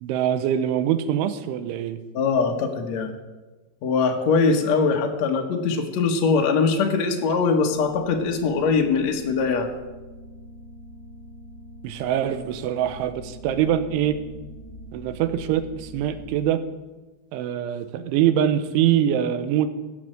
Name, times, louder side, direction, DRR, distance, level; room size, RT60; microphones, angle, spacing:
voice 1, 0.0-2.0 11.8-14.2 14.9-16.6 17.3-19.7, right 10 dB, 90° right, 11 dB, 3.2 m, -23 dB
voice 2, 2.1-3.1 3.8-9.7, left 4 dB, 85° left, 3 dB, 1.5 m, -22 dB
sound 1, 7.2-16.4, equal, 70° right, 4.6 m, -43 dB
16.5 x 7.9 x 7.7 m, 1.2 s
omnidirectional pair, 5.4 m